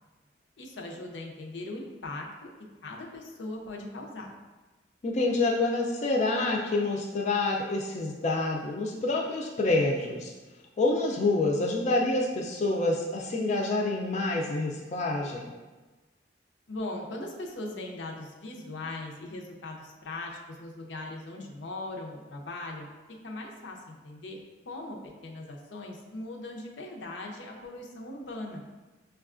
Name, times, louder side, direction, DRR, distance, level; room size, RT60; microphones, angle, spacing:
voice 1, 0.6-2.5 2.8-4.3 16.7-22.9 23.2-24.4 24.7-25.0 25.2-28.6, left 2 dB, 80° left, 0 dB, 0.6 m, -39 dB
voice 2, 5.0-10.3 10.8-15.5, left 2 dB, 40° left, -1 dB, 0.3 m, -27 dB
6.2 x 2.3 x 2.4 m, 1.2 s
head